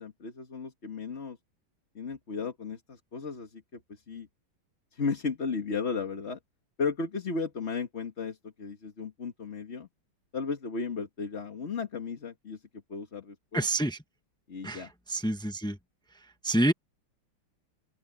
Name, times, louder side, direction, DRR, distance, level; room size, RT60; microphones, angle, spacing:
voice 1, 0.0-1.4 1.9-4.3 4.9-6.4 6.8-9.9 10.3-12.6 12.9-13.6 14.5-14.9, left 4 dB, 35° left, 1.8 m, -35 dB
voice 2, 13.5-14.0 14.6-15.8 16.4-16.7, right 1 dB, 5° left, 0.3 m, -28 dB
open air
omnidirectional pair, 2.2 m